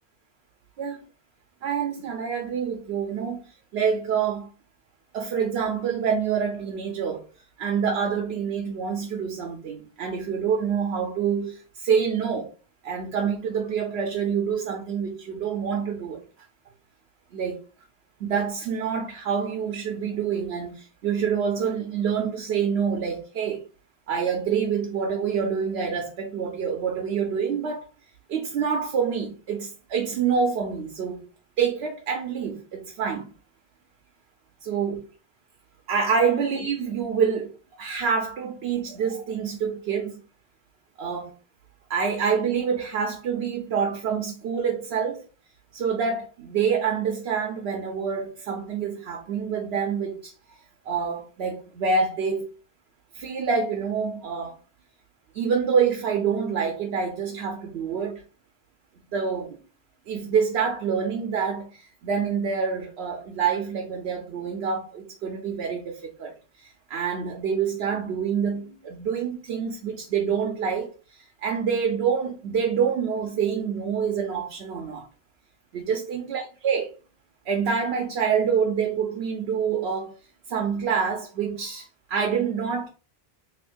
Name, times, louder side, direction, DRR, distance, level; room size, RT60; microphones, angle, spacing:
voice 1, 1.6-4.5 5.1-7.3 7.6-12.5 12.8-16.2 17.3-17.6 18.2-23.6 24.1-27.8 28.3-31.3 31.6-33.3 34.6-35.1 35.9-40.2 41.0-41.3 41.9-45.2 45.7-50.3 50.8-52.5 53.1-54.6 55.3-58.2 59.1-59.6 60.1-75.1 75.7-76.9 77.5-80.1 80.5-82.9, right 6 dB, 85° right, 0.9 m, -27 dB
2.7 x 2.5 x 3.6 m
omnidirectional pair, 1.0 m